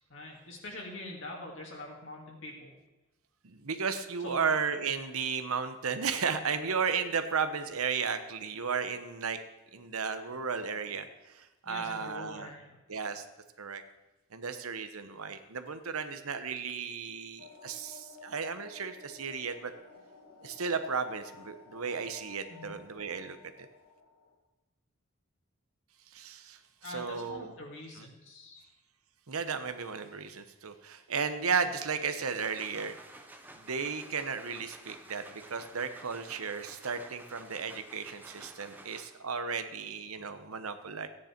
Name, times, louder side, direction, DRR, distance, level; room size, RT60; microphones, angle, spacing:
voice 1, 0.1-2.7 4.2-4.5 11.7-12.8 22.5-22.7 26.8-28.6, left 1 dB, 60° left, -2 dB, 2.2 m, -44 dB
voice 2, 3.4-9.4 9.7-12.5 12.9-13.3 13.6-13.8 14.3-19.7 20.4-23.4 26.1-27.5 28.0-28.1 29.3-33.0 33.5-41.1, right 5 dB, 80° right, 9 dB, 1.0 m, -34 dB
sound 1, 17.4-24.4, left 4 dB, 85° left, 2.0 m, -54 dB
sound 2, 32.0-39.4, right 1 dB, 10° right, 0.8 m, -52 dB
14.5 x 9.8 x 4.5 m, 1.0 s
head